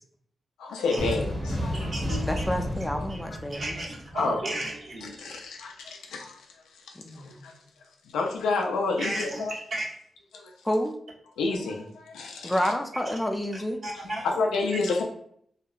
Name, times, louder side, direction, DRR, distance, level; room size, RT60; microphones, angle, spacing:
voice 1, 0.6-2.2 3.3-3.4 4.1-4.4 5.0-7.6 8.0-9.5 10.3-10.5 11.4-12.7 13.9-15.0, left 3 dB, 90° left, 1 dB, 0.4 m, -30 dB
sound 1, 1.0-4.4, equal, 30° right, 0.8 m, -31 dB
voice 2, 1.7-2.5 3.1-3.2 3.5-5.2 9.0-9.9 13.8-14.3 14.7-14.8, right 1 dB, 55° right, -4 dB, 1.0 m, -34 dB
voice 3, 2.3-3.8 7.0-7.4 10.6-10.9 12.4-13.8, equal, 10° left, 4 dB, 0.4 m, -29 dB
2.7 x 2.1 x 2.3 m, 0.65 s
supercardioid pair, 45°, 0 cm